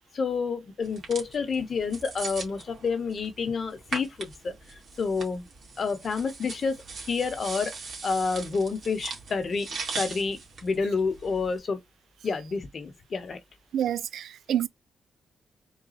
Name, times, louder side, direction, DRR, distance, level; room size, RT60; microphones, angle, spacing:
voice 1, 0.1-5.5 5.8-7.7 8.0-11.8 12.2-13.4, left 5 dB, 45° left, 0.9 m, -29 dB
sound 1, 0.8-11.6, right 4 dB, 55° right, 1.9 m, -40 dB
voice 2, 13.7-14.7, right 10 dB, 80° right, 0.3 m, -28 dB
4.0 x 2.3 x 4.0 m
cardioid pair, 100°, 0 cm